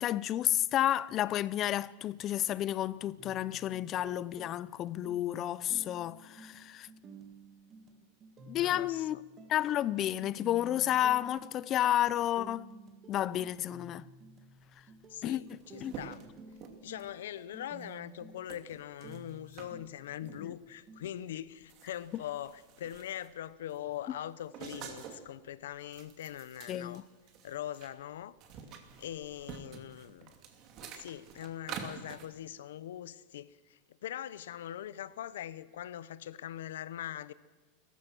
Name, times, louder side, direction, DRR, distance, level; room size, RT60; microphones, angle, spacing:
voice 1, 0.0-6.9 8.5-9.2 9.5-12.7 13.1-14.1 15.2-15.4 15.8-15.9 20.4-20.5 26.7-27.0, left 12 dB, 35° left, 0.6 m, -31 dB
sound 1, 3.2-21.1, right 3 dB, 25° right, 2.0 m, -53 dB
voice 2, 8.6-9.2 15.1-16.2 16.8-27.1 27.4-28.4 29.0-30.4 30.8-37.3, left 11 dB, 90° left, 0.9 m, -42 dB
sound 2, 15.0-15.1 15.3-17.3 17.8-18.0 18.5-19.7 20.3-20.5 21.0-21.2 21.5-23.4 23.7-25.3 25.7-27.9 28.2-32.3, right 7 dB, 40° right, 2.7 m, -48 dB
29.0 x 14.5 x 6.2 m
supercardioid pair, 145°, 0 cm